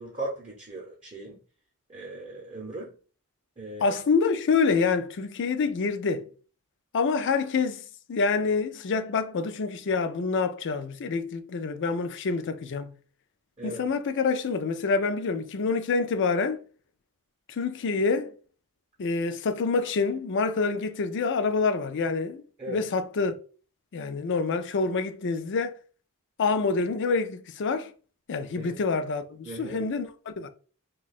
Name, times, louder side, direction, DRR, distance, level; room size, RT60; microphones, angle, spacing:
voice 1, 0.0-1.4 1.9-2.9 3.6-4.0 13.6-13.8 22.6-22.8 28.6-28.7 29.4-29.8, right 2 dB, 30° right, 0.7 m, -37 dB
voice 2, 3.8-6.2 6.9-7.8 8.1-12.9 13.6-16.6 17.5-18.3 19.0-23.3 23.9-25.8 26.4-27.9 28.3-30.5, left 4 dB, 55° left, 0.4 m, -27 dB
2.7 x 2.3 x 4.0 m
head